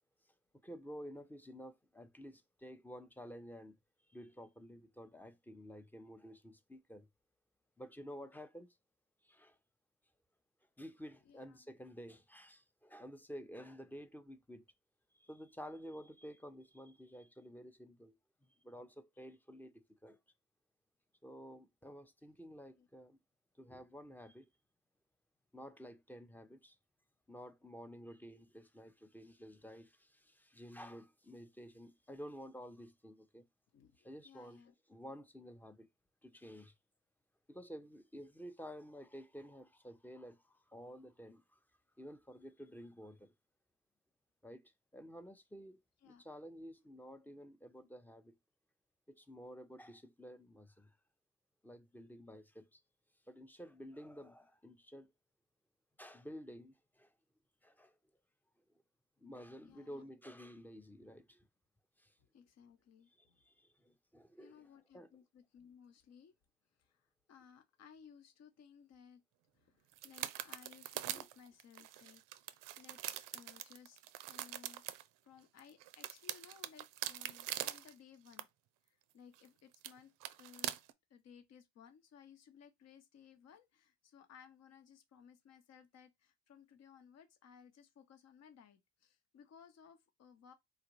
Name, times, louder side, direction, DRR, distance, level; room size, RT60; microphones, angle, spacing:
voice 1, 0.6-3.8 4.1-7.1 7.8-8.7 9.2-9.6 10.8-14.7 15.2-18.1 18.6-20.2 21.2-23.2 23.6-24.5 25.5-26.8 27.3-33.5 34.0-34.6 34.9-35.9 36.2-36.7 37.5-41.6 42.0-43.3 44.4-48.3 49.1-50.9 51.6-52.8 53.3-55.1 56.0-57.1 57.6-57.9 59.2-61.4 62.0-62.1 63.4-64.6 64.9-65.1 71.1-71.2, equal, 5° left, 0.6 m, -52 dB
voice 2, 11.2-11.7 22.8-22.9 33.7-34.0 34.2-34.7 46.0-46.2 59.6-60.1 62.2-63.4 64.4-66.3 66.8-69.2 69.5-74.0 74.3-78.5 78.9-80.1 80.4-80.7 81.1-90.5, left 7 dB, 50° left, 0.9 m, -61 dB
sound 1, 69.9-75.0 75.6-77.9 78.3-78.4 79.3-79.5 79.7-79.9 80.2-80.9, right 14 dB, 70° right, 0.5 m, -43 dB
3.9 x 2.4 x 3.0 m
supercardioid pair, 70°, 33 cm